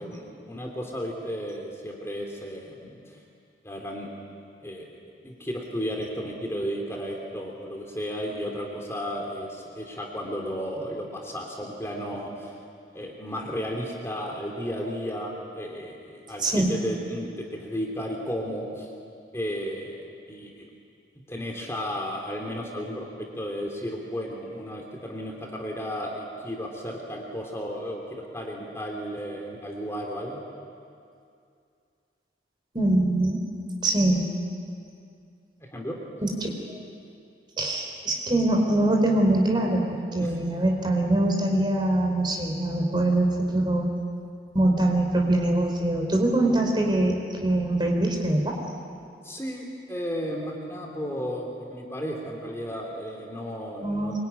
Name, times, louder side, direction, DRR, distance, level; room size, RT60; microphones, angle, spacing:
voice 1, 0.0-3.2 3.6-4.1 4.6-4.8 5.2-12.5 12.9-18.9 19.3-20.6 21.3-30.4 35.7-36.0 40.2-40.3 49.2-54.2, equal, 15° left, 0 dB, 3.1 m, -33 dB
voice 2, 16.4-16.7 32.7-33.4 33.8-34.3 36.2-36.5 37.6-43.9 44.5-48.6 53.8-54.2, right 1 dB, 25° right, 1 dB, 4.1 m, -23 dB
25.0 x 23.5 x 9.9 m, 2.4 s
head